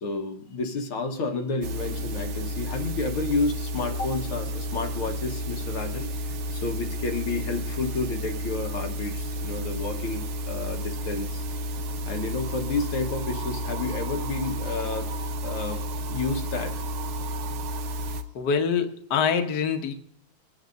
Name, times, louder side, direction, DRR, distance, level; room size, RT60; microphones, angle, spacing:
voice 1, 0.0-11.4 12.0-15.1 15.4-15.8 16.1-16.8, left 3 dB, 85° left, 3 dB, 2.2 m, -30 dB
sound 1, 1.6-18.2, equal, 80° right, 1.8 m, -32 dB
voice 2, 18.3-19.9, left 6 dB, 60° left, 5 dB, 1.5 m, -25 dB
24.5 x 9.4 x 2.6 m, 0.69 s
omnidirectional pair, 2.3 m